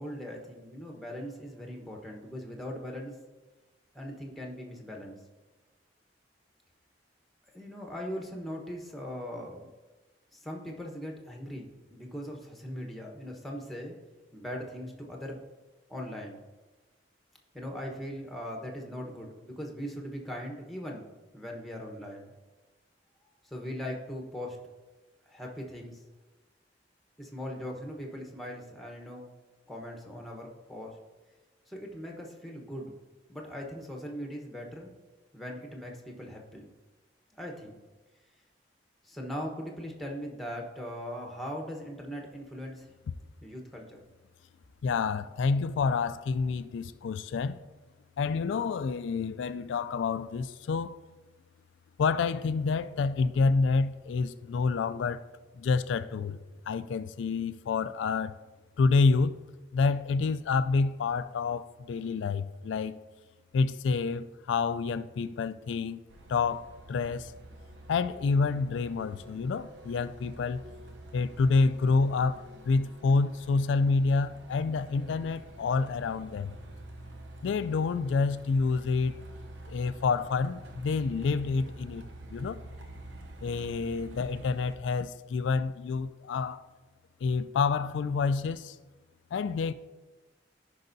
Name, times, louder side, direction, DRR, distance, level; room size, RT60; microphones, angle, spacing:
voice 1, 0.0-3.2 3.9-5.2 7.5-9.7 10.3-13.9 14.3-15.4 15.9-16.4 17.5-22.3 23.4-24.6 25.3-26.0 27.2-29.3 29.7-31.0 31.7-32.9 33.3-34.9 35.3-36.7 37.3-37.8 39.0-42.9 43.4-44.0, equal, ahead, 1.1 m, -40 dB
voice 2, 44.8-47.6 48.2-51.0 52.0-55.2 55.5-56.4 56.7-58.4 58.8-59.4 59.7-63.0 63.5-66.0 66.3-67.3 67.9-70.6 71.1-76.6 77.4-79.1 79.7-82.0 82.3-82.6 83.4-86.6 87.2-88.8 89.3-89.7, left 4 dB, 90° left, 0.3 m, -28 dB
Truck, 66.1-84.8, right 1 dB, 80° right, 0.8 m, -48 dB
14.5 x 5.4 x 2.7 m
head